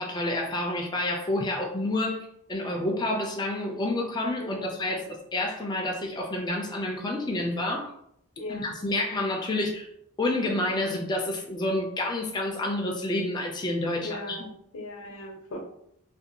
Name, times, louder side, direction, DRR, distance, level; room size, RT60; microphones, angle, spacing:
voice 1, 0.0-2.2 2.5-7.9 8.5-9.9 10.2-14.5, left 1 dB, 20° left, 0 dB, 0.3 m, -29 dB
voice 2, 4.4-5.0 8.4-8.7 14.0-14.5 14.7-15.6, left 1 dB, 80° left, 2 dB, 0.6 m, -38 dB
2.5 x 2.2 x 2.7 m, 0.72 s
head